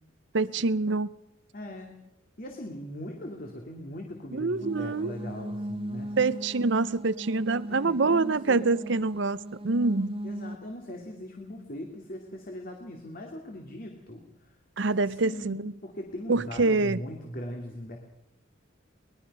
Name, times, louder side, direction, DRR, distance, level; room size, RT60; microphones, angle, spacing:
voice 1, 0.3-1.1 4.3-5.2 6.2-10.2 14.8-15.7 16.3-17.0, right 3 dB, 60° right, 0.7 m, -26 dB
voice 2, 1.5-1.9 2.4-6.3 7.7-8.9 10.2-14.5 15.1-18.0, left 1 dB, 45° left, 2.5 m, -40 dB
sound 1, 4.6-10.6, equal, 30° right, 0.8 m, -38 dB
23.0 x 20.5 x 5.5 m
head